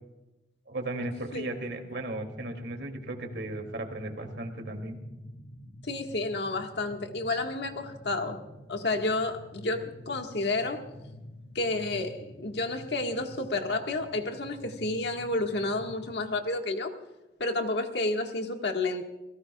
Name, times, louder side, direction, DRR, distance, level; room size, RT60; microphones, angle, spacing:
voice 1, 0.7-5.0, right 2 dB, 80° right, 2.7 m, -36 dB
sound 1, 2.2-16.2, left 1 dB, 50° left, 2.4 m, -48 dB
voice 2, 5.8-8.4 8.7-10.8 11.6-16.9 17.4-19.0, left 2 dB, 70° left, 1.7 m, -30 dB
28.5 x 17.0 x 2.4 m
head